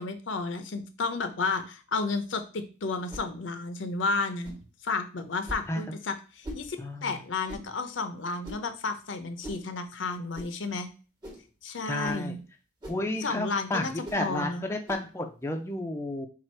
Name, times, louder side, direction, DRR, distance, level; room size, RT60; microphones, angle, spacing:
voice 1, 0.0-4.5 4.8-10.9 11.6-12.4 13.2-14.6, left 3 dB, 85° left, 9 dB, 0.6 m, -32 dB
sound 1, 3.1-3.3 4.4-4.7 5.5-5.7 6.4-6.7 7.5-7.7 8.4-8.7 9.4-9.7 10.3-10.5 11.2-11.5 12.0-12.3 12.8-13.1 14.0-14.3 14.9-15.1, equal, 20° right, 1.1 m, -41 dB
voice 2, 6.8-7.2 11.9-12.3 12.9-13.8 14.1-16.3, left 2 dB, 15° left, 4 dB, 0.4 m, -31 dB
4.5 x 2.4 x 4.3 m, 0.35 s
head